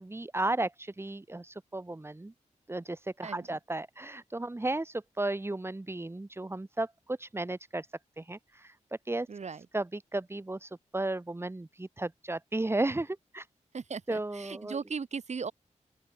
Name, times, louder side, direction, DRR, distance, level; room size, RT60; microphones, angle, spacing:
voice 1, 0.0-2.3 2.7-7.9 8.2-8.8 9.1-9.3 9.7-13.5 14.1-14.8, right 2 dB, 20° right, 4.9 m, -34 dB
voice 2, 9.3-9.7 13.7-15.5, right 5 dB, 60° right, 5.6 m, -37 dB
open air
wide cardioid pair, 125°, 13 cm